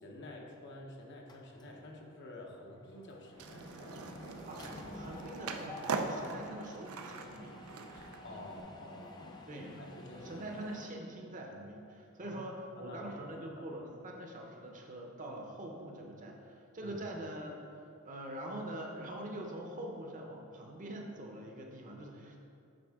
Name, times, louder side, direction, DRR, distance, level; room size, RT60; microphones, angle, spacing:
voice 1, 0.0-4.1 6.3-6.4 7.9-10.5 12.2-12.4 12.7-13.6 16.8-17.0, left 1 dB, 55° left, 0 dB, 0.9 m, -50 dB
Mechanisms, 1.3-1.9 2.2-2.4 2.7-10.9, left 1 dB, 20° left, 0.5 m, -50 dB
Skateboard, 3.4-8.6, right 4 dB, 80° right, 0.5 m, -41 dB
voice 2, 4.5-7.6 9.5-9.8 10.2-17.6 18.0-22.4, right 1 dB, 35° right, 0 dB, 0.8 m, -44 dB
7.7 x 4.9 x 3.6 m, 2.5 s
head